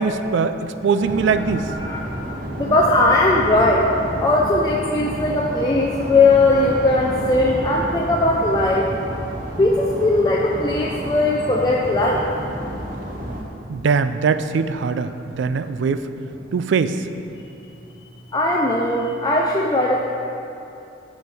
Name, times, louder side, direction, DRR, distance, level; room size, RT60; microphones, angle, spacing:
voice 1, 0.0-1.7 13.7-16.1 16.5-17.1, right 5 dB, 60° right, 11 dB, 0.3 m, -21 dB
sound 1, 1.0-13.4, right 1 dB, 45° right, 1.0 m, -30 dB
voice 2, 1.7-2.1 2.6-3.9 4.2-8.9 9.6-12.3 18.3-20.1, left 2 dB, 20° left, -2 dB, 0.4 m, -19 dB
9.5 x 4.5 x 5.4 m, 2.7 s
head